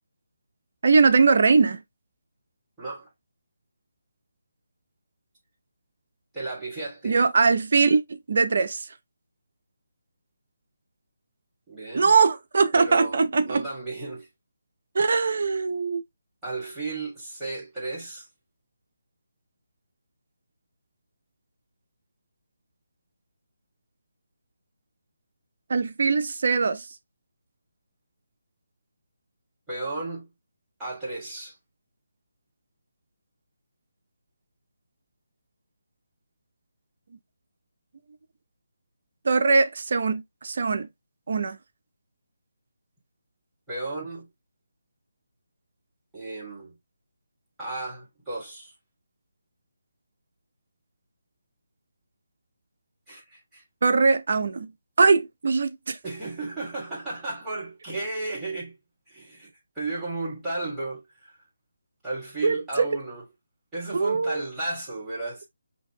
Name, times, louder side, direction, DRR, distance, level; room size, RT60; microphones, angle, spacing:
voice 1, 0.8-1.8 7.0-8.8 11.9-13.6 14.9-16.0 25.7-26.8 39.2-40.9 41.3-41.6 53.8-54.7 55.0-56.0 62.4-62.9 63.9-64.4, right 4 dB, 60° right, 0.7 m, -21 dB
voice 2, 2.8-3.1 6.3-7.2 11.7-12.1 12.7-14.3 16.4-18.2 29.7-30.3 30.8-31.5 43.7-44.3 46.1-46.7 47.6-48.7 53.1-53.6 56.0-58.7 59.1-59.5 59.7-61.3 62.0-63.2 63.7-65.5, right 2 dB, 10° right, 3.0 m, -34 dB
5.0 x 2.8 x 3.2 m
figure-of-eight pair, 160°, 0 cm